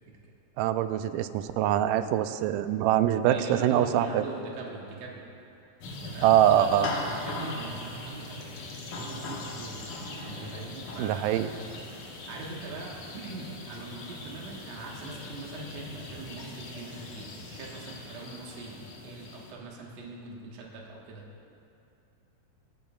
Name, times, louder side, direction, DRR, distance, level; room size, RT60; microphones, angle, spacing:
voice 1, 0.6-4.2 6.2-6.9 11.0-11.5, right 11 dB, 85° right, 11 dB, 2.1 m, -24 dB
voice 2, 3.3-5.2 6.0-8.5 9.0-9.8 10.2-11.6 12.3-21.2, right 3 dB, 60° right, -2 dB, 2.4 m, -41 dB
sound 1, 5.8-19.5, left 2 dB, 70° left, 2.8 m, -40 dB
25.5 x 9.3 x 2.4 m, 2.7 s
omnidirectional pair, 3.7 m